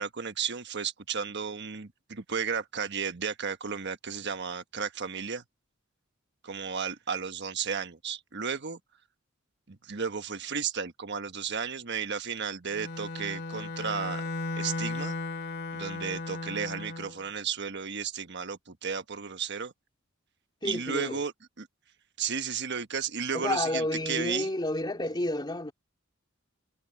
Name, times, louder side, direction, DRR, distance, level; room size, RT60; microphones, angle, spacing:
voice 1, 0.0-5.4 6.4-8.8 9.7-14.2 14.6-15.2 15.7-19.7 20.6-21.3 21.6-21.7 22.2-24.5, right 6 dB, 60° right, 1.3 m, -33 dB
Bowed string instrument, 12.7-17.2, left 2 dB, 55° left, 2.1 m, -35 dB
voice 2, 20.6-21.2 23.3-25.7, left 1 dB, 20° left, 3.1 m, -30 dB
head